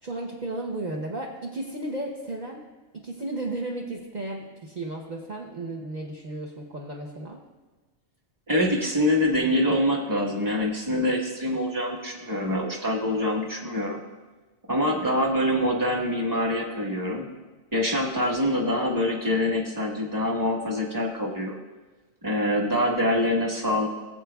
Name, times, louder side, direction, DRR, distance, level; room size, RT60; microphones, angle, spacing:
voice 1, 0.0-2.6 2.9-7.4, right 2 dB, 40° right, -1 dB, 0.9 m, -34 dB
voice 2, 8.5-14.0 14.7-17.3 17.7-21.6 22.2-23.9, left 1 dB, 15° right, -1 dB, 1.3 m, -25 dB
19.0 x 7.7 x 2.3 m, 1.2 s
omnidirectional pair, 1.4 m